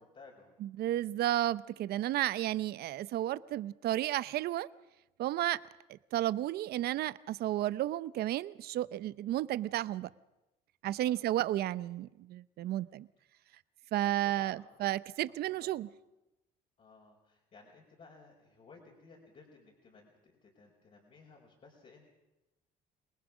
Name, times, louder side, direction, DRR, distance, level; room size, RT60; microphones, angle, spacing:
voice 1, 0.0-0.6 11.0-11.4 12.6-13.0 13.9-14.8 15.3-15.7 16.8-22.1, left 4 dB, 45° left, 5.3 m, -58 dB
voice 2, 0.6-4.7 5.2-5.6 5.9-10.1 10.8-13.1 13.9-15.9, right 14 dB, 70° right, 0.7 m, -32 dB
27.5 x 19.5 x 6.3 m
cardioid pair, 110°, 17 cm